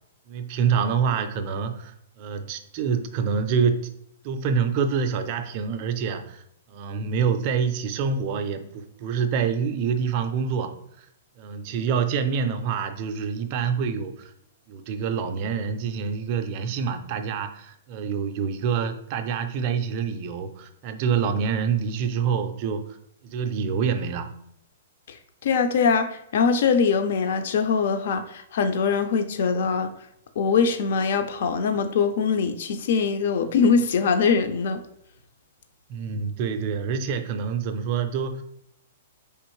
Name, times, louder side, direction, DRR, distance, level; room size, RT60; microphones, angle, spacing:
voice 1, 0.3-3.9 4.2-6.4 6.7-11.1 11.4-14.3 14.7-22.8 23.2-24.3 35.9-38.4, right 6 dB, 25° right, 0.4 m, -26 dB
voice 2, 25.4-29.9 30.4-34.8, left 5 dB, 50° left, 0.4 m, -22 dB
5.0 x 3.5 x 3.0 m
hypercardioid pair, 175°, 0 cm